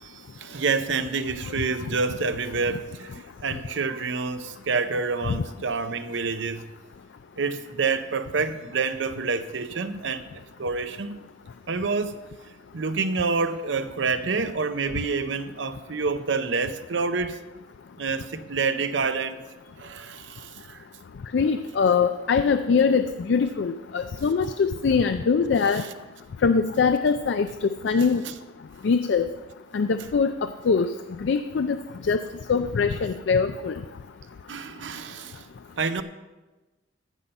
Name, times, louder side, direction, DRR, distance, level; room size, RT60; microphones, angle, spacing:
voice 1, 0.0-6.6 7.4-10.2 10.6-11.2 11.7-12.2 12.7-17.4 18.0-19.4 19.8-20.8 34.5-35.4 35.8-36.0, right 4 dB, 75° right, 0.7 m, -28 dB
voice 2, 21.3-25.8 26.4-28.2 28.8-29.3 29.7-30.3 30.6-30.9 31.2-31.8 32.0-32.2 32.5-33.8, left 5 dB, 65° left, 0.4 m, -22 dB
14.5 x 5.6 x 5.3 m
head